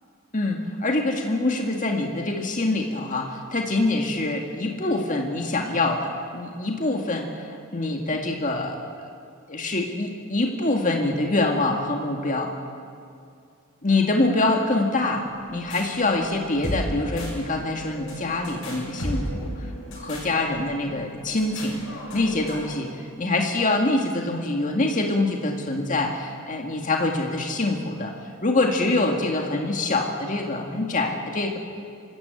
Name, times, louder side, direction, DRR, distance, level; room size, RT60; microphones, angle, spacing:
voice 1, 0.3-7.3 7.7-9.1 9.5-12.5 13.8-19.5 20.0-21.9 22.1-28.1 28.4-31.6, left 2 dB, 35° left, 2 dB, 2.0 m, -25 dB
sound 1, 15.2-22.7, equal, 65° left, 7.0 m, -35 dB
25.0 x 13.5 x 8.2 m, 2.3 s
head